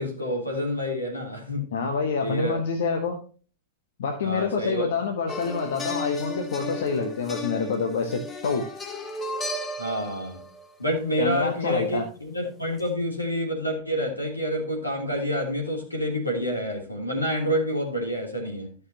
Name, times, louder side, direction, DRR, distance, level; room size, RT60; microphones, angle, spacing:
voice 1, 0.0-1.6 2.2-2.5 4.2-4.8 9.8-10.4 10.8-18.8, equal, 85° left, 3.1 m, -28 dB
voice 2, 1.7-3.2 4.0-8.7 11.2-12.0, left 5 dB, 60° left, 1.4 m, -27 dB
sound 1, 5.3-11.0 12.8-12.9, left 2 dB, 20° left, 1.7 m, -35 dB
14.0 x 6.7 x 2.9 m
figure-of-eight pair, 90°, 0 cm